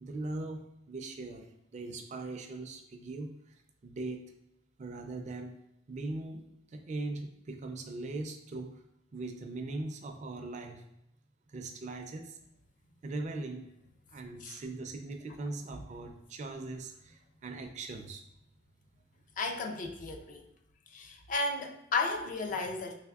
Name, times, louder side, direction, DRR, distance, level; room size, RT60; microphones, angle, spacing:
voice 1, 0.0-3.3 3.8-4.3 4.8-5.5 5.9-6.4 6.7-8.8 9.1-10.8 11.5-12.4 13.0-13.7 14.1-18.2, right 2 dB, 40° right, 5 dB, 0.4 m, -40 dB
voice 2, 19.4-20.4 20.9-22.9, left 3 dB, 45° left, 5 dB, 0.4 m, -34 dB
3.4 x 3.3 x 2.3 m, 0.82 s
head